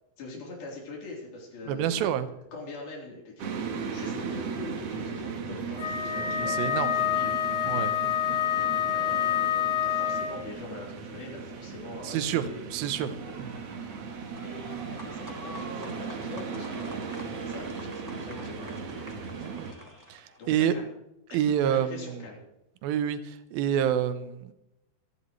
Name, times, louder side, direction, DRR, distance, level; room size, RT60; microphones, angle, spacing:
voice 1, 0.2-2.2 2.5-7.3 7.9-8.2 8.9-12.6 13.8-19.4 20.4-20.9 21.6-22.4, left 2 dB, 85° left, -2 dB, 5.5 m, -43 dB
voice 2, 1.7-2.3 6.5-6.9 7.7-7.9 12.0-12.4 12.7-13.5 19.4-19.7 20.1-20.7 21.3-22.2 22.8-24.5, right 9 dB, 85° right, 11 dB, 2.7 m, -28 dB
sound 1, 3.4-19.7, right 5 dB, 55° right, 2.0 m, -37 dB
Wind instrument woodwind instrument, 5.8-10.5, left 9 dB, 50° left, 1.9 m, -27 dB
sound 2, 13.0-20.4, right 1 dB, 5° right, 1.7 m, -46 dB
26.0 x 11.0 x 3.2 m, 0.88 s
omnidirectional pair, 4.1 m